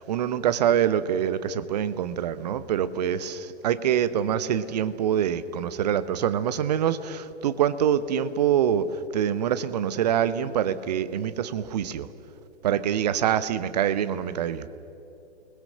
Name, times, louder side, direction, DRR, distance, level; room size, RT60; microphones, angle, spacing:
voice 1, 0.0-12.1 12.6-14.7, right 9 dB, 35° right, 14 dB, 1.1 m, -25 dB
29.5 x 21.0 x 6.7 m, 2.9 s
figure-of-eight pair, 120°, 34 cm